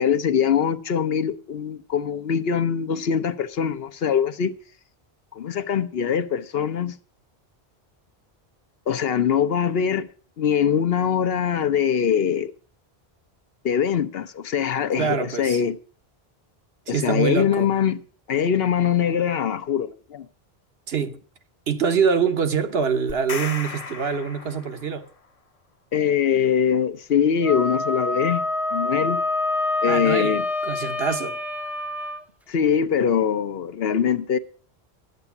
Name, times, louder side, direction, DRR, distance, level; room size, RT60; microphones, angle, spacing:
voice 1, 0.0-4.5 5.3-6.9 8.9-10.1 10.4-12.5 13.6-15.8 16.9-18.0 18.3-20.3 25.9-29.2 29.8-30.4 32.5-34.4, left 8 dB, 70° left, 1.0 m, -22 dB
voice 2, 15.0-15.6 16.9-17.7 20.9-21.2 21.7-25.1 29.8-31.4, right 6 dB, 75° right, 1.2 m, -24 dB
sound 1, 23.1-25.1, left 4 dB, 40° left, 0.8 m, -35 dB
Wind instrument woodwind instrument, 27.4-32.2, left 2 dB, ahead, 0.5 m, -26 dB
12.0 x 8.1 x 7.0 m
omnidirectional pair, 1.0 m